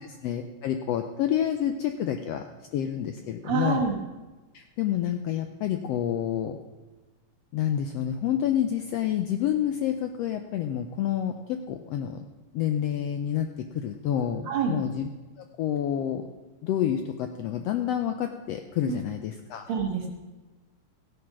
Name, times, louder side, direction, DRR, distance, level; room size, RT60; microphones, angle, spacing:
voice 1, 0.2-2.4 2.7-3.8 4.5-6.6 7.5-12.2 12.5-13.5 13.7-15.1 15.4-16.3 16.6-19.6, left 10 dB, 75° left, 6 dB, 1.5 m, -28 dB
voice 2, 3.4-4.0 14.5-14.8 18.9-19.0 19.7-20.1, right 6 dB, 50° right, 3 dB, 2.0 m, -27 dB
15.5 x 8.8 x 6.1 m, 1.2 s
omnidirectional pair, 3.5 m